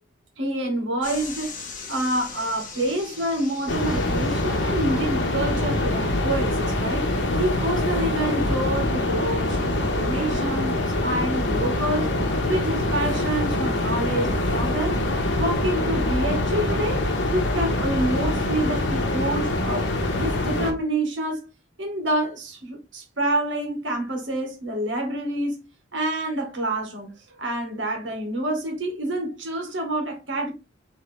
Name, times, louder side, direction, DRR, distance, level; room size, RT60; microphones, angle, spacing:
voice 1, 0.4-12.1 12.5-15.0 15.4-17.0 17.3-19.9 20.2-21.4 21.8-25.6 25.9-30.5, right 1 dB, 75° right, 1.6 m, -27 dB
sound 1, 1.0-5.6, left 5 dB, 45° left, 1.1 m, -40 dB
sound 2, 3.7-20.7, left 1 dB, 65° left, 1.1 m, -24 dB
4.6 x 3.3 x 3.4 m
head